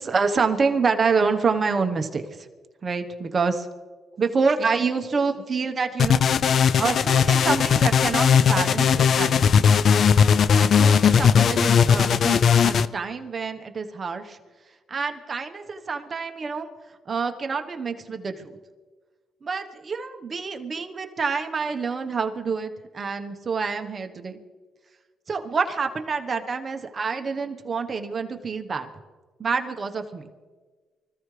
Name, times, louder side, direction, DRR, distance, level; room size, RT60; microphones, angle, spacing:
voice 1, 0.0-2.5 2.8-3.7 4.2-6.2 6.8-9.6 10.6-14.4 14.9-16.7 17.1-18.5 19.4-24.4 25.3-28.9 29.4-30.4, right 5 dB, 40° right, 5 dB, 1.2 m, -27 dB
sound 1, 6.0-12.9, left 7 dB, 60° left, 0.4 m, -18 dB
24.5 x 14.5 x 3.4 m, 1.4 s
cardioid pair, 90°, 0 cm